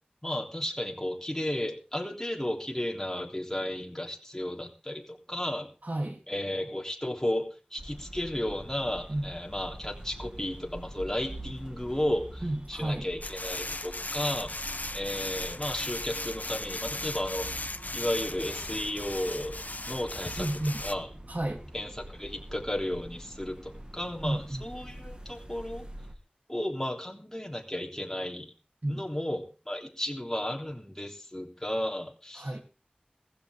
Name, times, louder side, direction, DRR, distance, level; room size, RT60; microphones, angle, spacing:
voice 1, 0.2-5.7 6.3-12.4 12.7-14.6 14.9-17.5 17.9-19.6 19.9-20.5 20.8-21.1 21.7-25.9 26.5-28.5 28.9-32.5, left 1 dB, 15° left, 1 dB, 3.4 m, -33 dB
voice 2, 5.8-6.2 9.1-9.2 12.4-13.1 20.4-20.8 21.3-21.6 24.2-24.6 28.8-29.0 32.4-32.6, right 1 dB, 60° right, 4 dB, 3.2 m, -31 dB
sound 1, 7.8-26.1, right 1 dB, 30° right, 2.2 m, -45 dB
sound 2, 13.2-20.9, left 2 dB, 60° left, 1.0 m, -37 dB
15.5 x 15.5 x 3.7 m, 0.34 s
wide cardioid pair, 40°, 3 cm